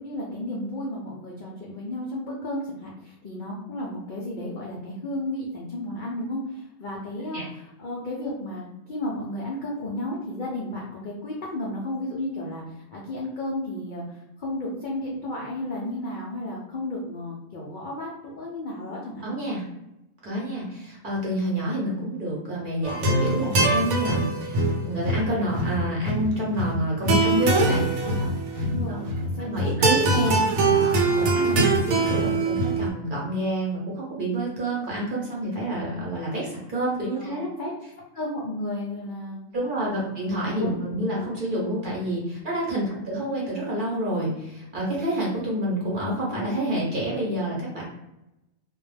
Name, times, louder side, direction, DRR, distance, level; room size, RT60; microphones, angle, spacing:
voice 1, 0.0-7.4 7.8-19.2 28.0-28.4 28.6-30.5 31.3-31.8 37.1-37.7 38.1-39.4 39.9-40.1 40.6-41.2 42.8-43.1, left 1 dB, 75° left, -4 dB, 0.4 m, -33 dB
voice 2, 19.2-19.6 20.2-28.1 28.5-28.6 29.4-31.6 31.9-37.5 39.5-47.8, right 1 dB, 50° right, -4 dB, 0.7 m, -28 dB
sound 1, 22.8-32.9, right 2 dB, 80° right, 1.0 m, -23 dB
2.3 x 2.1 x 3.1 m, 0.91 s
omnidirectional pair, 1.4 m